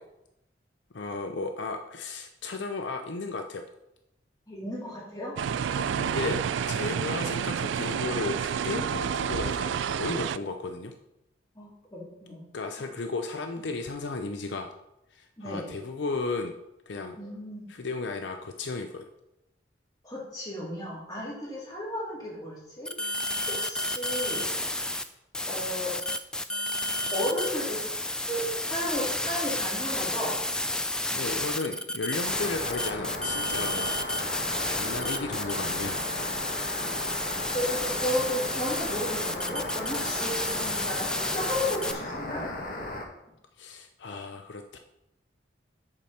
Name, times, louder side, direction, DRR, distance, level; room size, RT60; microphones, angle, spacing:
voice 1, 0.9-3.7 5.9-10.9 12.5-14.7 15.1-16.5 16.9-17.2 17.7-19.1 31.1-33.9 34.6-36.0 43.6-44.8, left 3 dB, 70° left, 6 dB, 0.6 m, -34 dB
voice 2, 4.5-5.9 6.7-6.9 11.6-12.4 15.4-15.7 17.2-17.7 20.0-22.9 23.6-24.5 25.5-25.9 27.1-27.9 28.3-30.4 37.5-42.5, left 1 dB, 20° left, -5 dB, 2.5 m, -34 dB
sound 1, 5.4-10.4, right 7 dB, 80° right, 0.3 m, -29 dB
sound 2, 22.9-25.0 25.3-41.9, left 1 dB, 5° left, 0.3 m, -31 dB
sound 3, 32.3-43.1, left 1 dB, 45° left, 1.3 m, -36 dB
8.6 x 4.3 x 6.4 m, 0.87 s
head